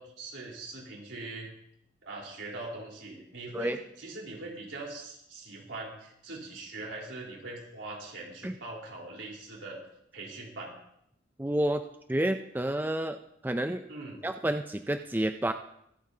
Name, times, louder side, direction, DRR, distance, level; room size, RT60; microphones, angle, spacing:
voice 1, 0.0-1.5 2.0-9.8 10.1-10.7 13.9-14.2, right 2 dB, 75° right, -2 dB, 3.9 m, -42 dB
voice 2, 11.4-13.8 14.2-15.5, right 1 dB, 10° right, 7 dB, 0.3 m, -30 dB
23.5 x 8.9 x 2.8 m, 0.76 s
head